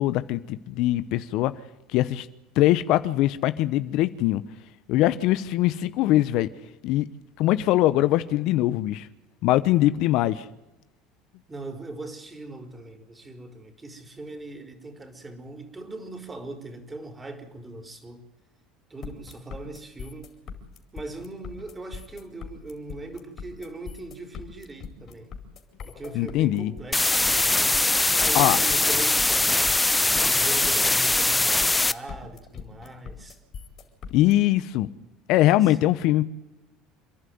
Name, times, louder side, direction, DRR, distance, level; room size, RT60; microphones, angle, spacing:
voice 1, 0.0-1.5 1.9-2.3 2.6-4.4 4.9-6.5 6.8-7.1 7.4-9.1 9.4-10.4 26.1-26.7 28.3-28.6 34.1-34.9 35.3-36.2, left 15 dB, 65° left, 14 dB, 0.9 m, -22 dB
voice 2, 11.5-18.2 18.9-20.3 20.9-25.3 25.8-33.4 35.4-36.0, right 2 dB, 20° right, 7 dB, 4.3 m, -40 dB
sound 1, 19.0-34.3, left 6 dB, 50° left, 4.6 m, -41 dB
sound 2, 26.9-31.9, left 2 dB, 10° left, 0.8 m, -21 dB
28.5 x 11.5 x 9.5 m, 0.99 s
hypercardioid pair, 80°, 0 cm